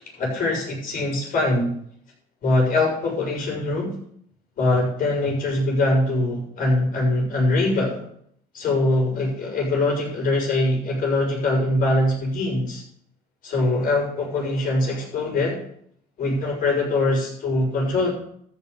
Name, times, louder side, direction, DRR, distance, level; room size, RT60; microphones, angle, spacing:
voice 1, 0.2-1.7 2.4-3.9 4.6-8.0 8.5-12.8 13.4-15.6 16.2-18.1, left 2 dB, 55° left, -1 dB, 6.7 m, -22 dB
13.0 x 5.8 x 8.4 m, 0.66 s
cardioid pair, 110°, 17 cm